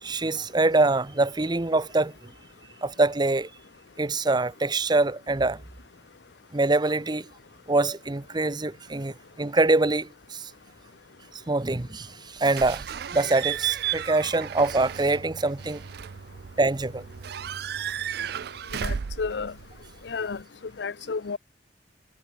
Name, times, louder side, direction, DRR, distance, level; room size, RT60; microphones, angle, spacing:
voice 1, 0.0-2.3 2.8-3.5 4.0-5.6 6.5-7.3 7.7-10.5 11.5-12.9 13.1-15.8 16.6-17.0, right 2 dB, 25° right, 0.8 m, -24 dB
Slam / Squeak / Alarm, 12.4-20.4, right 9 dB, 60° right, 0.4 m, -34 dB
voice 2, 18.8-19.5 20.0-20.4 20.8-21.4, left 5 dB, 75° left, 0.6 m, -31 dB
head